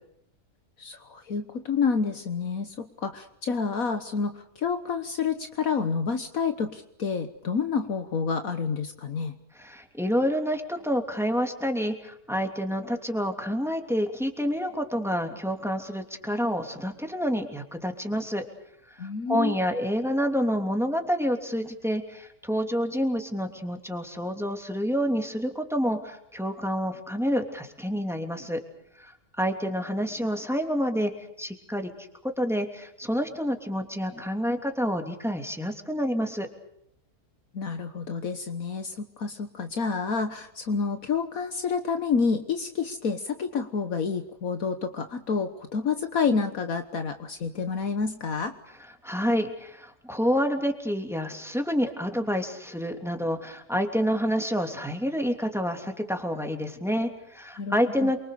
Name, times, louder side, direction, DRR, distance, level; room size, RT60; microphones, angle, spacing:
voice 1, 0.8-9.3 19.0-19.5 37.5-48.5 57.6-57.8 58.0-58.1, left 5 dB, 70° left, 8 dB, 1.7 m, -29 dB
voice 2, 9.5-18.5 19.0-28.6 29.0-29.1 29.4-31.1 31.4-31.9 32.4-36.5 49.0-58.2, equal, ahead, 4 dB, 3.0 m, -28 dB
28.5 x 24.5 x 6.8 m, 0.74 s
omnidirectional pair, 1.6 m